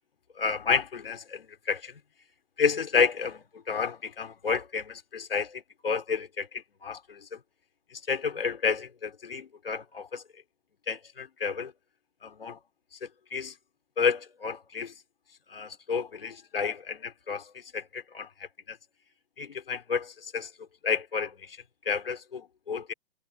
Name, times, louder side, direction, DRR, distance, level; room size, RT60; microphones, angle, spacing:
voice 1, 0.4-2.0 2.6-7.4 7.9-10.2 10.9-11.7 12.2-12.6 13.0-13.5 14.0-14.9 15.5-18.3 18.7-18.8 19.4-20.5 20.8-21.6 21.8-22.9, left 5 dB, 70° left, 3.0 m, -31 dB
figure-of-eight pair, 115°, 30 cm